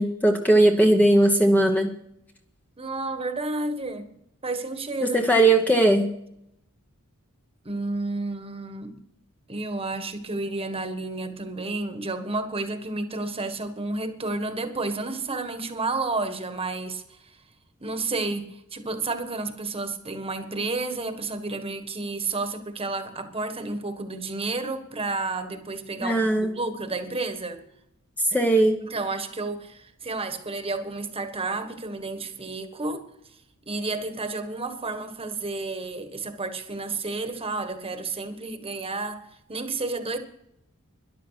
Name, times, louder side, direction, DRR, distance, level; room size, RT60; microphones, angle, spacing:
voice 1, 0.0-1.9 5.0-6.1 26.0-26.5 28.3-28.8, right 1 dB, 5° left, 3 dB, 0.9 m, -19 dB
voice 2, 2.8-4.1 4.4-5.2 7.6-8.9 9.5-17.4 17.8-27.6 28.9-33.0 33.7-40.2, right 3 dB, 25° right, 7 dB, 1.5 m, -31 dB
13.0 x 11.0 x 5.8 m, 0.76 s
head